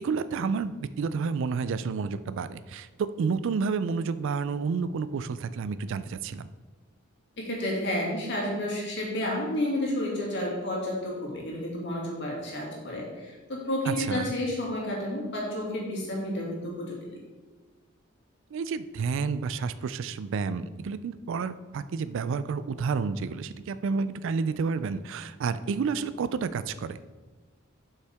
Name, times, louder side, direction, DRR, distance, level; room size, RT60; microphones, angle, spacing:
voice 1, 0.0-6.5 13.9-14.3 18.5-27.0, right 5 dB, 65° right, 14 dB, 0.3 m, -30 dB
voice 2, 7.4-17.0, left 1 dB, 60° left, -3 dB, 2.2 m, -31 dB
7.8 x 5.7 x 3.5 m, 1.3 s
head